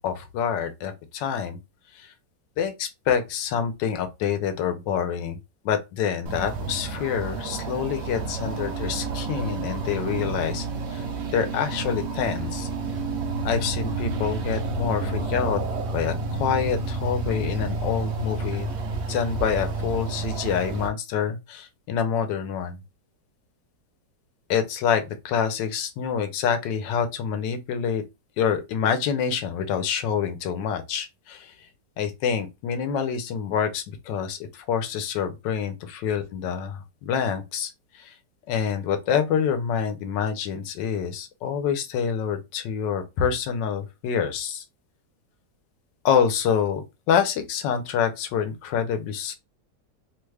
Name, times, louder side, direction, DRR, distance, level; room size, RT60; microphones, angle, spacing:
voice 1, 0.0-1.6 2.6-5.4 5.6-10.6 10.9-11.0 11.3-12.7 13.4-15.6 15.9-18.7 19.1-22.7 24.5-28.0 28.4-31.4 32.0-34.4 34.7-37.7 38.5-44.6 46.0-49.3, left 7 dB, 85° left, 1.3 m, -26 dB
sound 1, 6.3-20.9, right 3 dB, 75° right, 0.6 m, -30 dB
3.2 x 2.3 x 3.2 m
omnidirectional pair, 1.9 m